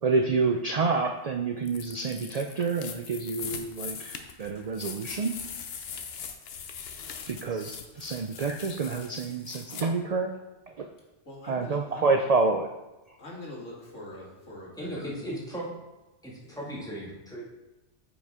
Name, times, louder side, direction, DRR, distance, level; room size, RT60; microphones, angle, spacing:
voice 1, 0.0-5.4 7.3-10.4 10.8-10.9 11.5-12.7, right 4 dB, 70° right, 4 dB, 0.3 m, -28 dB
sound 1, 1.7-9.8, left 6 dB, 60° left, 0.9 m, -41 dB
voice 2, 11.3-12.3 13.2-15.1 16.4-16.6, left 1 dB, 80° left, -3 dB, 2.2 m, -44 dB
voice 3, 14.8-15.8 16.2-17.4, equal, 5° left, -5 dB, 1.8 m, -37 dB
9.3 x 5.3 x 3.6 m, 1.0 s
omnidirectional pair, 1.3 m